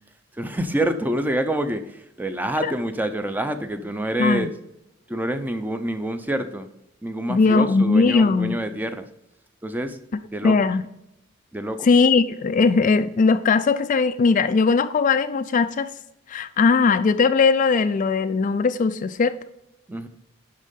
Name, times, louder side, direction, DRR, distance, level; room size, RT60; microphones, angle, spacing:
voice 1, 0.3-4.5 5.1-6.7 7.0-9.1 9.6-10.0 10.3-10.7 11.5-11.9 19.9-20.1, right 1 dB, 10° right, 9 dB, 0.6 m, -27 dB
voice 2, 4.2-4.5 7.3-8.6 10.4-10.8 11.8-15.9 16.3-19.4, left 4 dB, 40° left, 12 dB, 0.3 m, -19 dB
11.0 x 3.7 x 5.3 m, 0.85 s
head